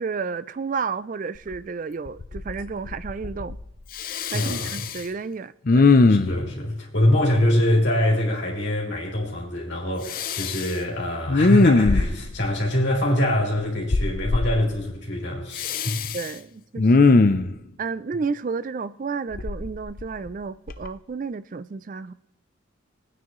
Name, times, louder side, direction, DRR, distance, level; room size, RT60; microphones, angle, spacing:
voice 1, 0.0-3.6 4.3-5.9 16.1-17.1 17.8-22.1, right 5 dB, 40° right, 0.3 m, -31 dB
Respiratory sounds, 1.5-1.6 2.1-2.6 2.9-3.6 4.0-5.0 5.7-6.5 10.1-10.7 11.3-12.3 13.9-14.5 15.6-16.3 16.8-17.5 19.3-20.3 20.7-20.9, left 3 dB, 45° left, 0.5 m, -20 dB
voice 2, 4.3-4.7 6.1-16.2, left 1 dB, 60° left, 3.7 m, -24 dB
22.0 x 9.5 x 3.1 m
head